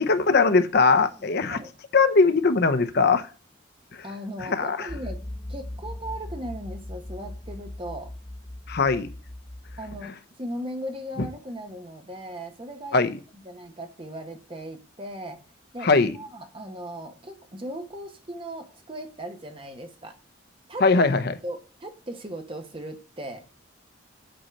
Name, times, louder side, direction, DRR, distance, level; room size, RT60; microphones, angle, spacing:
voice 1, 0.0-1.6 1.9-3.3 4.4-4.9 8.7-9.1 11.2-11.3 12.9-13.2 15.8-16.2 20.8-21.4, left 4 dB, 55° left, 11 dB, 0.7 m, -20 dB
voice 2, 1.2-1.7 4.0-5.2 5.5-8.1 9.8-13.0 13.4-15.4 15.7-20.1 20.7-20.9 21.2-23.4, right 1 dB, 25° right, 5 dB, 1.3 m, -38 dB
sound 1, 4.9-10.0, left 1 dB, 10° left, 0.4 m, -39 dB
7.9 x 4.3 x 6.5 m, 0.35 s
head